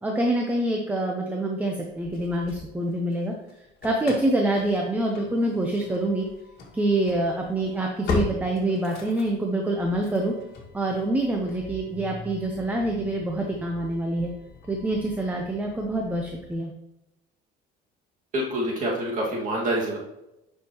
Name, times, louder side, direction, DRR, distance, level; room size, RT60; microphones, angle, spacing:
voice 1, 0.0-3.3 3.8-6.3 6.7-10.3 10.7-14.3 14.7-16.7, right 1 dB, 10° right, 1 dB, 0.8 m, -26 dB
Engine starting / Slam, 1.8-3.2 3.5-16.5, left 3 dB, 55° left, 2.1 m, -39 dB
voice 2, 18.3-20.0, right 1 dB, 40° right, -3 dB, 2.1 m, -26 dB
9.3 x 5.7 x 3.0 m, 0.91 s
cardioid pair, 130°, 19 cm